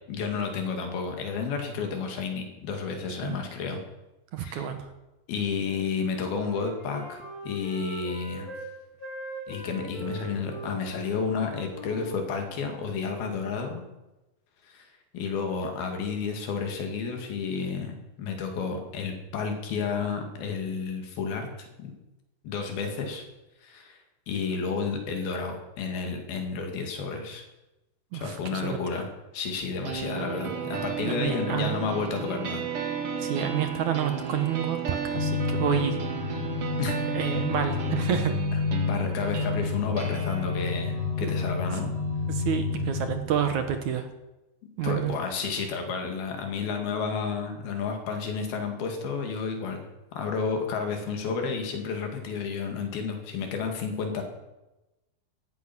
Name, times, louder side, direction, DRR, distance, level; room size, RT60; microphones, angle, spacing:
voice 1, 0.1-3.8 4.4-4.7 5.3-8.5 9.5-13.8 14.6-14.9 15.1-21.5 21.8-21.9 22.4-23.3 23.6-24.0 24.3-27.4 28.1-29.1 29.3-32.6 36.8-37.0 38.9-41.9 44.8-49.9 50.2-54.2, left 5 dB, 85° left, 4 dB, 4.2 m, -31 dB
voice 2, 4.3-4.9 28.1-28.8 31.0-31.8 33.2-36.0 37.1-38.3 41.2-41.3 42.3-44.1 44.8-45.1, right 9 dB, 65° right, 7 dB, 2.3 m, -29 dB
Wind instrument woodwind instrument, 5.6-8.7 9.0-12.8, right 1 dB, 20° left, 5.5 m, -41 dB
sound 1, 29.8-43.8, right 6 dB, 45° right, 2.4 m, -35 dB
sound 2, 35.1-43.2, left 5 dB, 45° left, 2.4 m, -30 dB
16.5 x 14.0 x 6.1 m, 1.0 s
omnidirectional pair, 4.2 m